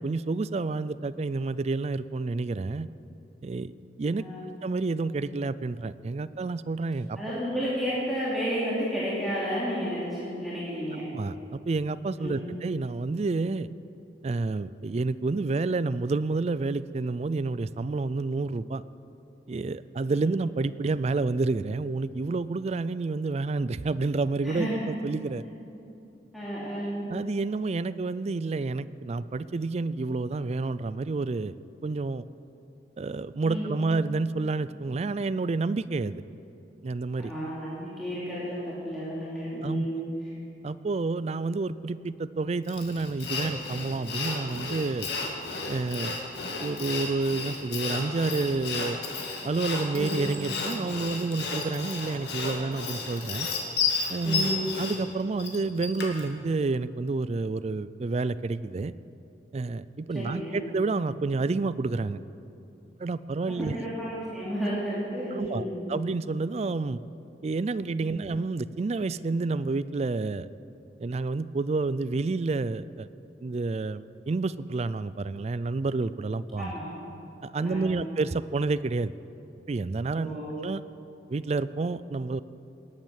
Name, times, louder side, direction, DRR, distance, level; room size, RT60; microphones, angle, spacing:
voice 1, 0.0-2.9 3.4-3.7 4.0-4.3 4.6-7.2 11.1-13.7 14.2-18.8 19.5-25.4 27.1-31.6 31.8-32.2 33.0-36.2 36.8-37.3 39.6-39.9 40.6-45.1 45.7-46.2 46.6-49.0 49.4-53.5 54.1-54.5 54.8-58.9 59.5-62.2 63.0-63.7 65.3-67.0 67.4-70.5 71.0-73.1 73.4-76.7 77.4-79.1 79.7-80.8 81.3-82.4, right 3 dB, 35° right, 16 dB, 0.4 m, -29 dB
voice 2, 4.1-4.5 7.2-11.0 12.2-12.6 24.4-24.9 26.3-27.1 33.4-33.9 37.2-40.0 49.9-50.2 54.2-54.7 60.1-60.6 63.6-65.8 68.0-68.1 76.6-77.1 77.6-78.0 80.2-80.5, equal, ahead, -9 dB, 2.7 m, -32 dB
Sawing, 42.7-56.3, left 4 dB, 65° left, 2.2 m, -32 dB
19.0 x 9.1 x 7.4 m, 2.8 s
head